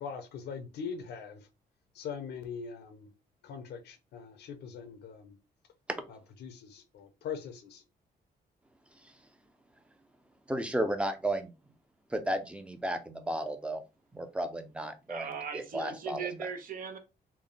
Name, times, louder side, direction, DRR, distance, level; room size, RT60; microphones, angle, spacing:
voice 1, 0.0-1.4 2.0-3.1 3.4-5.3 6.1-7.8, left 6 dB, 85° left, 0.8 m, -41 dB
voice 2, 10.5-11.5 12.1-13.8 14.1-15.3 15.5-16.2, right 1 dB, 5° right, 0.6 m, -33 dB
voice 3, 15.1-17.0, right 6 dB, 60° right, 0.9 m, -38 dB
3.5 x 2.2 x 3.9 m
cardioid pair, 120°, 17 cm